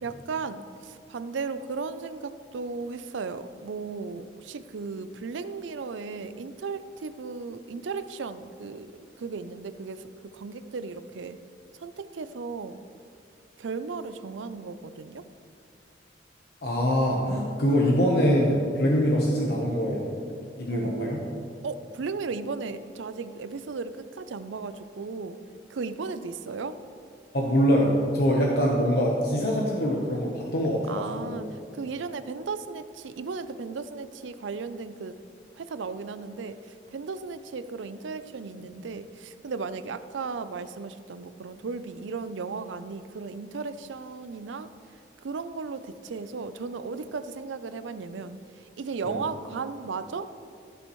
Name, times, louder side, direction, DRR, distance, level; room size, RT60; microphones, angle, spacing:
voice 1, 0.0-8.9 9.2-11.4 11.7-12.8 13.6-15.3 20.7-21.2 21.6-25.4 25.7-26.8 30.9-35.2 35.5-44.7 45.2-50.3, right 4 dB, 90° right, 12 dB, 0.5 m, -35 dB
voice 2, 16.6-20.1 20.6-21.2 27.3-31.4 49.0-49.1, equal, 55° left, -2 dB, 1.0 m, -24 dB
15.0 x 7.0 x 3.1 m, 2.5 s
head